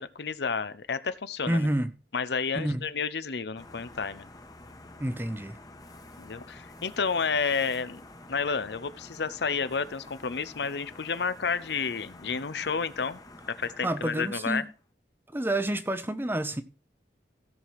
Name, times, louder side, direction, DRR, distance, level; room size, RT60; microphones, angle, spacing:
voice 1, 0.0-1.7 2.1-4.3 6.2-8.0 8.3-13.2 13.5-14.6, left 5 dB, 65° left, 0.7 m, -31 dB
voice 2, 1.5-1.9 2.6-2.8 5.0-5.6 13.8-14.7 15.3-16.6, right 1 dB, 10° right, 0.7 m, -29 dB
sound 1, 3.6-14.8, left 2 dB, 20° left, 1.2 m, -49 dB
16.0 x 5.9 x 4.7 m
head